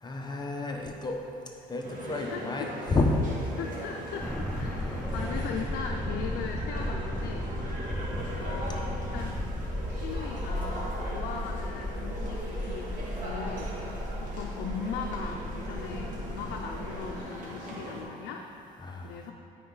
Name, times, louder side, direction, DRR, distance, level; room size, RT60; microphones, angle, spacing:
voice 1, 0.0-1.2 1.7-3.1 7.8-8.0 16.4-16.5 18.8-19.2, left 3 dB, 25° left, 1 dB, 0.9 m, -31 dB
sound 1, 1.8-18.0, right 1 dB, 50° right, 2.0 m, -40 dB
voice 2, 2.3-2.7 3.6-7.5 8.4-9.4 9.9-13.7 14.2-18.5 19.0-19.3, left 6 dB, 80° left, 1 dB, 0.6 m, -38 dB
sound 2, 4.2-17.2, left 1 dB, 5° left, 0.5 m, -35 dB
10.5 x 5.2 x 3.9 m, 2.6 s
cardioid pair, 110°, 17 cm